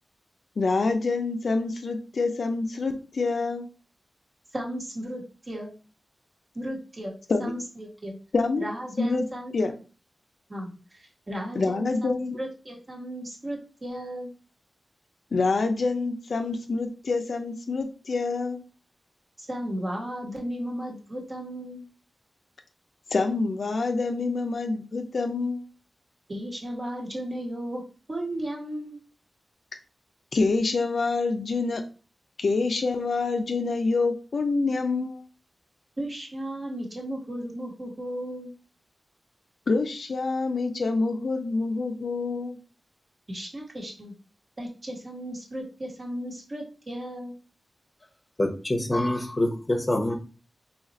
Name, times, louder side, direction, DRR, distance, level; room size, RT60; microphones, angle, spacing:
voice 1, 0.6-3.7 7.3-7.5 8.3-8.7 9.0-9.2 9.5-9.7 11.5-12.4 15.3-18.6 23.1-25.6 30.3-31.8 32.4-35.2 39.7-42.6, left 3 dB, 70° left, 5 dB, 0.4 m, -26 dB
voice 2, 4.5-5.7 6.5-8.2 8.6-9.5 10.5-14.3 19.4-21.8 26.3-29.0 36.0-38.5 43.3-44.1 44.6-47.3, equal, 40° right, -1 dB, 1.1 m, -35 dB
voice 3, 48.4-50.2, left 1 dB, 25° left, 3 dB, 0.7 m, -25 dB
2.8 x 2.4 x 4.0 m, 0.35 s
wide cardioid pair, 85°, 0 cm